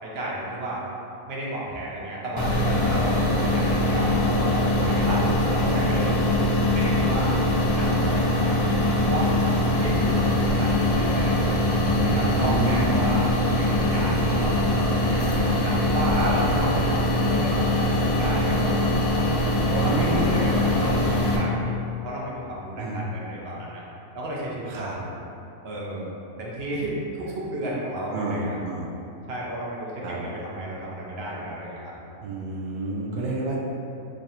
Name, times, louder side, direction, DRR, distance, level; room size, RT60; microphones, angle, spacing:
voice 1, 0.0-0.9 1.3-5.1 5.5-7.4 7.7-8.7 9.0-11.6 12.0-13.2 13.5-15.2 15.6-18.8 19.7-23.8 24.1-24.9 25.6-26.1 26.4-28.6 29.3-31.9, right 1 dB, 55° right, -5 dB, 0.8 m, -32 dB
sound 1, 2.4-21.4, left 1 dB, 75° left, 1.2 m, -22 dB
voice 2, 12.0-13.0 16.1-16.3 19.8-20.3 22.8-23.1 24.7-25.0 28.1-28.9 30.0-30.2 32.2-33.6, right 2 dB, 75° right, -4 dB, 0.4 m, -29 dB
3.3 x 2.5 x 4.1 m, 2.8 s
omnidirectional pair, 1.5 m